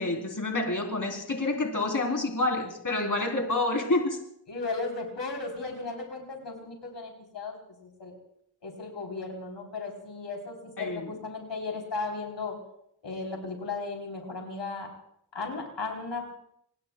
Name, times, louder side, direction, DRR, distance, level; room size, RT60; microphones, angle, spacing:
voice 1, 0.0-4.2 10.8-11.1, left 2 dB, 45° left, 1 dB, 3.7 m, -28 dB
voice 2, 4.5-7.6 7.8-8.1 8.6-12.6 13.0-14.9 15.3-16.3, left 3 dB, 80° left, 1 dB, 3.7 m, -35 dB
28.5 x 20.5 x 2.3 m, 0.71 s
wide cardioid pair, 60°, 42 cm